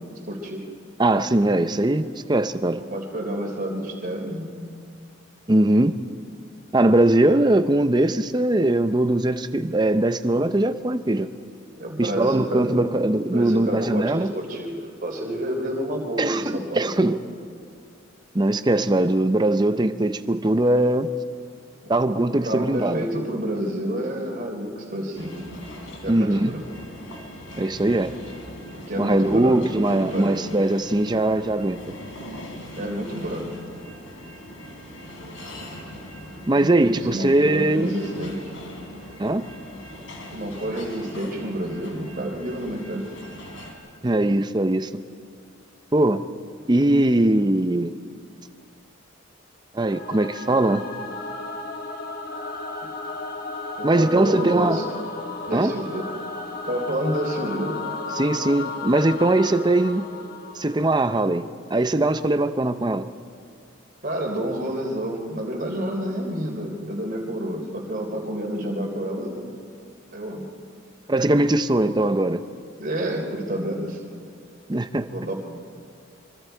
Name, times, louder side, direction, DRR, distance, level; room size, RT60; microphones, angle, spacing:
voice 1, 0.1-0.6 2.9-4.6 11.8-12.9 13.3-17.2 21.8-21.9 22.4-25.4 26.0-26.6 28.7-29.8 30.1-30.3 32.7-33.4 36.5-38.4 40.3-43.1 53.8-55.0 55.5-56.1 56.7-57.8 64.0-69.5 70.1-70.4 72.8-74.0 75.0-75.3, right 1 dB, 45° right, 1 dB, 3.3 m, -29 dB
voice 2, 1.0-2.8 5.5-6.0 6.7-11.3 12.0-14.3 16.2-17.2 18.3-21.1 21.9-23.1 26.1-26.5 27.5-28.1 29.0-31.8 36.4-37.9 39.2-39.4 44.0-44.9 45.9-46.2 46.7-47.9 49.7-50.8 53.8-54.8 55.5-55.7 58.1-60.1 60.6-63.1 71.1-72.4 74.7-75.1, right 1 dB, 20° right, 10 dB, 0.6 m, -21 dB
sound 1, 25.1-43.7, left 1 dB, 85° left, 3.4 m, -40 dB
Singing / Musical instrument, 49.8-61.1, left 3 dB, 45° left, 1.5 m, -34 dB
25.0 x 24.5 x 4.6 m, 2.3 s
head